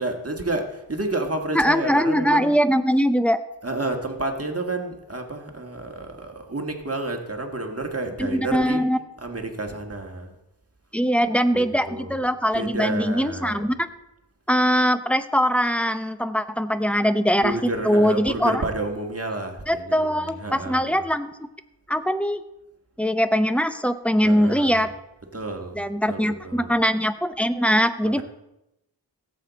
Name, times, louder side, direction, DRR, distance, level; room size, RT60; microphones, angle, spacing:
voice 1, 0.0-2.5 3.6-8.9 9.2-10.4 11.5-12.3 12.5-13.7 16.9-17.0 17.4-21.1 24.2-24.9 25.3-25.8 26.1-26.8 28.0-28.2, right 2 dB, 35° right, 3 dB, 1.6 m, -30 dB
voice 2, 1.5-3.4 8.2-9.0 10.9-13.9 14.5-17.6 17.8-18.6 19.7-21.5 21.9-22.4 23.0-24.9 25.7-28.2, equal, 5° left, 11 dB, 0.7 m, -22 dB
17.0 x 7.7 x 4.1 m, 0.90 s
wide cardioid pair, 55°, 44 cm